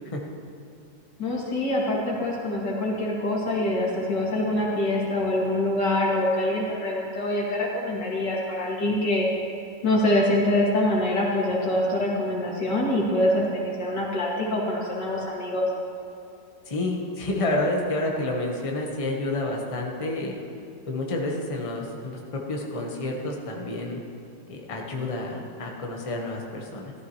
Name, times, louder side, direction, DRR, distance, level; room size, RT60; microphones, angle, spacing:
voice 1, 1.2-9.3 9.8-15.6, left 1 dB, 85° left, -4 dB, 2.9 m, -25 dB
voice 2, 16.7-20.4 20.9-24.0 24.5-26.9, left 2 dB, 20° left, 0 dB, 1.1 m, -29 dB
14.0 x 14.0 x 3.2 m, 2.6 s
omnidirectional pair, 1.9 m